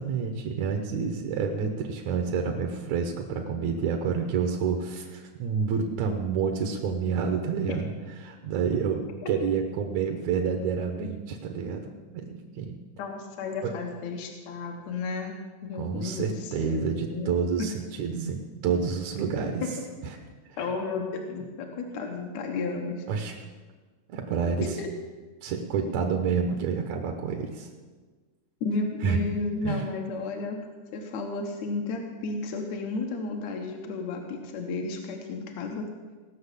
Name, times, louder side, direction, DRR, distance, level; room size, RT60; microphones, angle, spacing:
voice 1, 0.0-7.9 8.2-11.8 12.1-12.8 13.6-13.7 15.8-19.7 20.0-20.2 20.5-20.7 23.1-23.4 24.1-24.8 25.4-27.7 29.0-29.2 29.6-29.8, right 6 dB, 65° right, 3 dB, 2.1 m, -29 dB
voice 2, 13.0-15.4 15.6-17.4 19.6-19.7 20.6-23.1 24.8-24.9 28.6-30.6 30.9-35.9, left 3 dB, 65° left, 2 dB, 2.3 m, -33 dB
18.0 x 6.3 x 8.1 m, 1.4 s
omnidirectional pair, 3.8 m